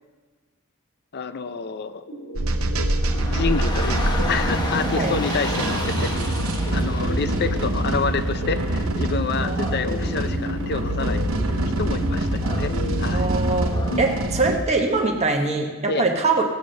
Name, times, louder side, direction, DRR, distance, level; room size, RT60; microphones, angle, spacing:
voice 1, 1.1-2.0 3.3-6.1 6.7-12.7 13.0-13.3 13.9-14.1 15.9-16.1, left 4 dB, 50° left, 12 dB, 0.6 m, -28 dB
sound 1, 2.1-13.3, left 1 dB, 80° left, 3.7 m, -35 dB
sound 2, 2.4-14.6, right 1 dB, 75° right, 0.9 m, -25 dB
Dog / Rain, 2.9-15.1, left 1 dB, 20° left, 1.0 m, -34 dB
voice 2, 9.4-9.7 13.1-16.4, right 3 dB, 30° right, 2 dB, 1.0 m, -23 dB
16.5 x 7.2 x 6.4 m, 1.5 s
head